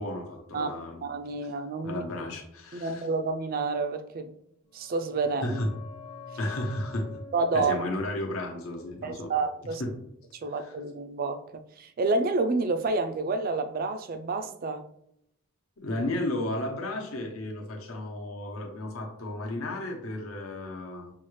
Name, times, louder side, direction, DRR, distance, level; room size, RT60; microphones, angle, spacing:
voice 1, 0.0-1.0 1.8-3.1 5.4-5.7 6.4-7.1 7.5-9.3 9.8-9.9 10.5-10.7 15.8-21.1, left 1 dB, 75° left, 0.9 m, -33 dB
voice 2, 1.0-2.0 2.7-4.3 4.7-5.6 7.3-7.9 9.0-9.8 10.4-14.8, right 3 dB, 40° right, 0.3 m, -29 dB
sound 1, 4.7-10.2 10.4-10.5, left 4 dB, 25° left, 0.7 m, -47 dB
5.5 x 2.4 x 3.1 m
head